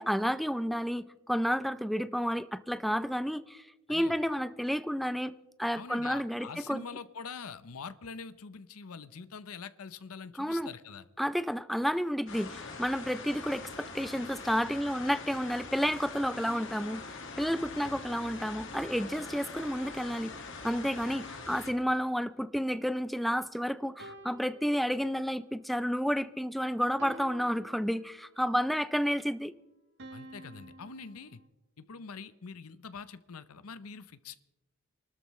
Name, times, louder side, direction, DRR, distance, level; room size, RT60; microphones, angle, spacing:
voice 1, 0.0-3.6 3.9-6.8 10.4-10.7 11.2-17.0 17.4-20.3 20.6-29.5, equal, ahead, 13 dB, 0.4 m, -31 dB
voice 2, 5.7-11.0 17.8-18.0 30.1-31.4 31.8-34.4, left 5 dB, 85° left, 14 dB, 0.7 m, -44 dB
sound 1, 12.3-21.7, left 4 dB, 60° left, 1.9 m, -43 dB
sound 2, 24.0-25.4 27.0-28.4 30.0-31.5, equal, 55° right, 1.0 m, -51 dB
25.0 x 13.0 x 3.2 m, 1.0 s
head